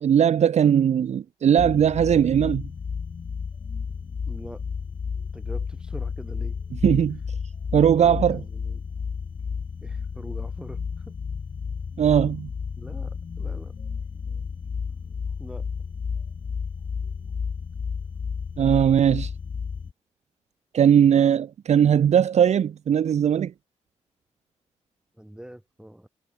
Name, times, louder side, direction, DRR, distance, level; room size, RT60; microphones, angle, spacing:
voice 1, 0.0-2.6 6.8-7.2 7.7-8.4 12.0-12.5 18.6-19.3 20.7-23.5, right 9 dB, 65° right, 0.5 m, -19 dB
sound 1, 1.6-19.9, left 6 dB, 45° left, 0.8 m, -32 dB
voice 2, 4.3-4.6 5.3-6.6 7.9-8.9 9.8-11.1 12.8-13.8 15.4-15.7 25.2-26.1, right 1 dB, 5° right, 7.9 m, -43 dB
cardioid pair, 85°, 12 cm